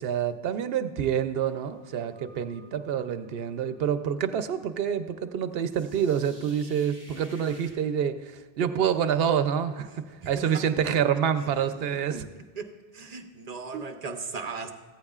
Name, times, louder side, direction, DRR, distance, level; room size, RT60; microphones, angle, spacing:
voice 1, 0.0-12.3 13.7-13.8, right 8 dB, 70° right, 11 dB, 0.8 m, -27 dB
sound 1, 1.3-7.7, equal, 15° left, 3.9 m, -55 dB
voice 2, 10.2-10.6 12.6-14.7, right 4 dB, 45° right, 6 dB, 0.8 m, -37 dB
15.0 x 14.0 x 2.4 m, 1.4 s
omnidirectional pair, 1.0 m